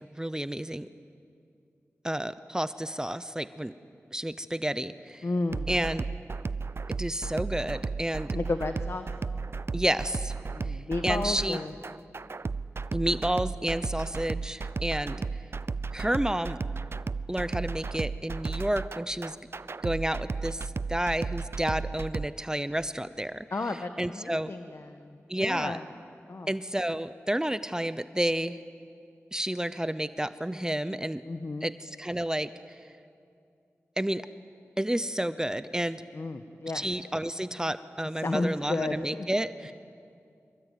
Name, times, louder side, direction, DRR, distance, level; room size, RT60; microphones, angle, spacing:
voice 1, 0.1-0.9 2.0-3.7 4.1-5.2 5.7-6.0 6.9-8.3 9.7-10.3 10.7-10.8 11.0-11.6 12.9-15.2 15.9-16.6 17.3-19.4 19.8-23.4 24.0-24.5 25.3-25.8 26.5-28.6 29.3-31.2 31.6-32.8 34.0-34.2 34.8-36.0 36.7-39.7, right 1 dB, 15° right, 13 dB, 0.8 m, -30 dB
voice 2, 5.2-5.7 8.3-9.1 10.5-11.7 23.5-25.8 26.3-26.5 31.3-31.7 36.1-36.9 38.2-39.3, left 3 dB, 55° left, 7 dB, 1.3 m, -33 dB
sound 1, 5.5-22.3, right 4 dB, 55° right, 0.5 m, -34 dB
25.5 x 23.0 x 9.3 m, 2.4 s
cardioid pair, 55°, 5 cm